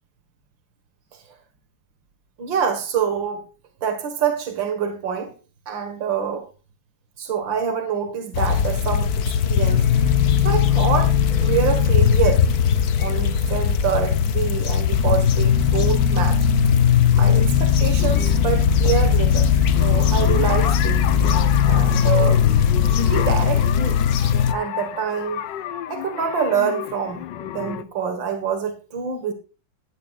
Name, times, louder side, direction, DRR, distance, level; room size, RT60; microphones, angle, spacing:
voice 1, 2.4-3.4 3.8-5.3 5.7-6.5 7.2-10.1 10.4-12.5 13.0-16.5 17.1-21.0 21.6-22.4 23.0-25.4 25.9-29.3, right 7 dB, 80° right, 2.4 m, -26 dB
sound 1, 8.3-24.5, left 7 dB, 60° left, 1.3 m, -18 dB
sound 2, 18.0-27.8, left 11 dB, 75° left, 1.4 m, -31 dB
15.5 x 13.0 x 2.5 m
omnidirectional pair, 2.0 m